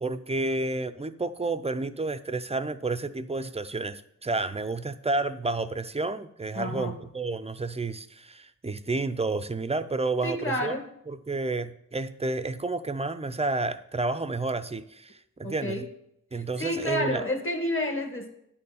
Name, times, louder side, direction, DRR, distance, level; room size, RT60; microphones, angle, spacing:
voice 1, 0.0-10.7 11.1-15.8 16.3-17.2, right 3 dB, 20° right, 11 dB, 0.5 m, -30 dB
voice 2, 6.5-7.0 10.2-10.9 15.4-15.9 16.3-18.3, left 1 dB, 40° left, 5 dB, 1.7 m, -30 dB
10.0 x 4.2 x 6.9 m, 0.74 s
wide cardioid pair, 70°, 33 cm